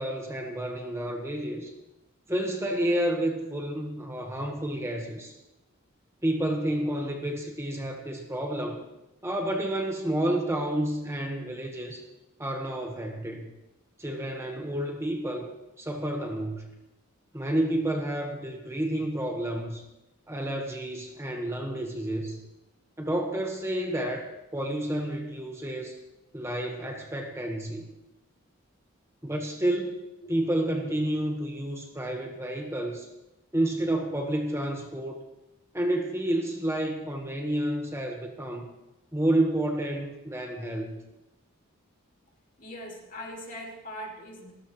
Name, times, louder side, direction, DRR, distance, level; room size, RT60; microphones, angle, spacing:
voice 1, 0.0-1.7 2.3-5.4 6.2-8.8 9.2-12.0 12.4-13.5 14.0-15.5 15.8-16.7 17.3-19.8 20.3-22.4 23.0-26.0 26.3-27.9 29.2-30.0 30.3-33.1 33.5-35.2 35.7-38.7 39.1-41.0, right 1 dB, 15° right, 2 dB, 1.4 m, -30 dB
voice 2, 42.6-44.5, equal, 40° left, 0 dB, 2.8 m, -41 dB
28.5 x 13.5 x 3.2 m, 0.93 s
head